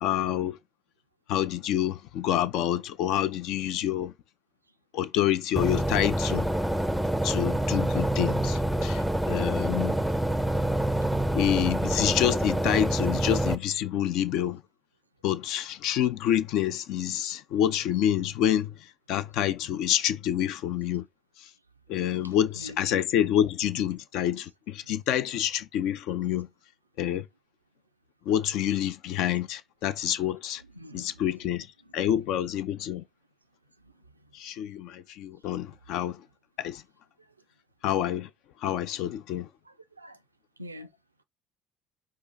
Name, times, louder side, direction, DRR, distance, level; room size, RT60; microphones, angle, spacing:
voice 1, 0.0-0.6 1.3-4.1 4.9-6.5 7.2-9.9 11.3-14.6 15.2-21.1 21.4-21.5 21.9-26.5 27.0-27.3 28.3-30.6 30.9-31.7 31.9-33.0 34.3-36.2 36.6-36.8 37.8-38.3 38.6-39.5, left 11 dB, 60° left, 0.4 m, -27 dB
sound 1, 5.6-13.6, right 1 dB, ahead, 0.5 m, -27 dB
voice 2, 30.8-31.1 39.7-40.2 40.6-40.9, left 1 dB, 85° right, 0.3 m, -44 dB
5.4 x 2.5 x 4.0 m
figure-of-eight pair, 55°, 0 cm